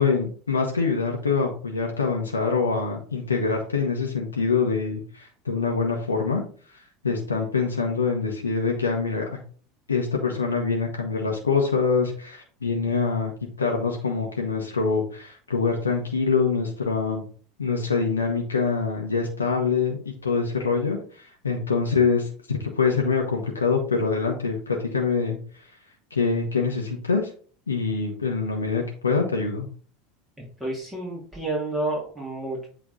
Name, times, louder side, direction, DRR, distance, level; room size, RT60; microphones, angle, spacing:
voice 1, 0.0-6.4 6.7-9.3 9.9-13.3 13.6-17.2 17.6-25.4 26.1-27.3 27.7-29.7, left 4 dB, 85° left, 1 dB, 1.0 m, -25 dB
voice 2, 30.6-32.7, right 2 dB, 10° right, -4 dB, 2.7 m, -30 dB
8.2 x 3.5 x 3.9 m, 0.43 s
figure-of-eight pair, 80°, 0 cm